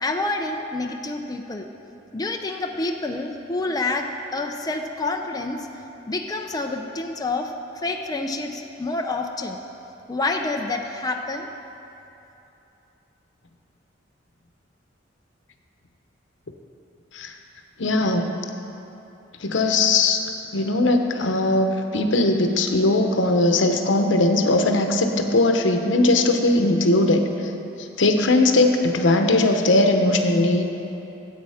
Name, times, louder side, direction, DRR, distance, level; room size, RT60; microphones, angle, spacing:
voice 1, 0.0-1.7 2.1-5.7 6.1-9.6 10.1-11.5, left 2 dB, 20° left, 2 dB, 0.5 m, -28 dB
voice 2, 17.8-18.3 19.4-20.2 20.5-27.2 28.0-30.7, left 2 dB, 75° left, 5 dB, 0.9 m, -19 dB
13.5 x 8.3 x 4.9 m, 2.9 s
head